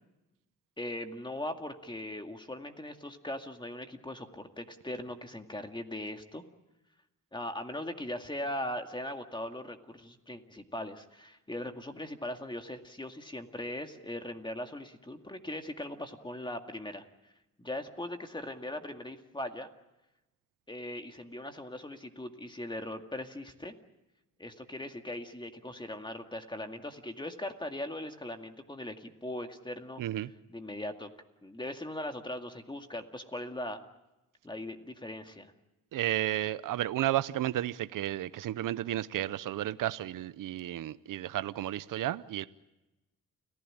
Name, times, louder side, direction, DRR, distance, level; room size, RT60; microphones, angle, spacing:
voice 1, 0.8-6.4 7.3-17.0 17.6-19.7 20.7-23.7 24.4-30.0 30.5-31.1 31.4-33.8 34.4-35.5, left 1 dB, 15° left, 2.1 m, -39 dB
voice 2, 30.0-30.3 35.9-42.5, right 13 dB, 75° right, 0.8 m, -32 dB
29.5 x 15.5 x 8.8 m
cardioid pair, 90°, 32 cm